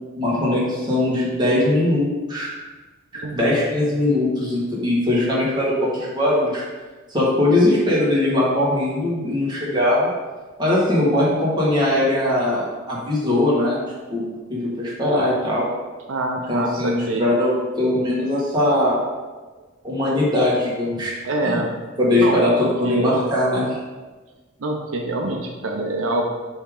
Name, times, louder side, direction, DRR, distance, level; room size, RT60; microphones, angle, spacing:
voice 1, 0.1-2.5 3.3-6.6 7.1-10.1 10.6-13.8 14.1-14.2 14.5-15.7 16.5-19.0 19.8-21.1 21.4-21.6 22.0-23.8, left 1 dB, 20° right, -7 dB, 1.7 m, -20 dB
voice 2, 3.1-3.6 16.1-17.3 21.2-21.7 22.2-22.4 22.8-23.1 24.6-26.2, right 2 dB, 80° right, 1 dB, 0.6 m, -25 dB
7.0 x 3.6 x 3.7 m, 1.3 s
head